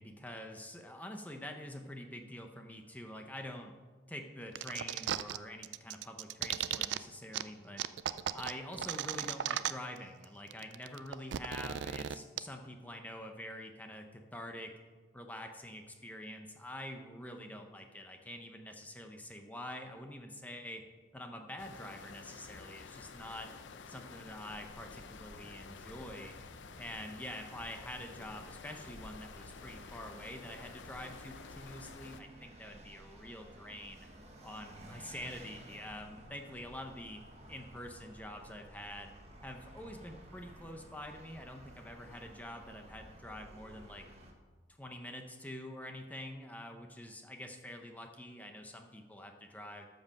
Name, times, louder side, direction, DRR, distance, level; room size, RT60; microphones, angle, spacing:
voice 1, 0.0-3.7 4.1-7.8 8.3-14.7 15.1-20.8 21.1-23.5 23.9-26.3 26.8-34.0 34.4-37.2 37.5-39.1 39.4-44.0 44.8-49.9, left 1 dB, 10° left, 4 dB, 0.7 m, -46 dB
sound 1, 4.5-5.4 5.6-7.0 7.3-7.4 7.8-10.0 10.2-10.3 10.5-12.4, right 10 dB, 75° right, 0.4 m, -36 dB
sound 2, 21.6-32.2, left 5 dB, 85° left, 0.6 m, -51 dB
Vehicle, 24.5-44.3, right 1 dB, 35° right, 1.4 m, -55 dB
12.5 x 5.2 x 6.5 m, 1.4 s
head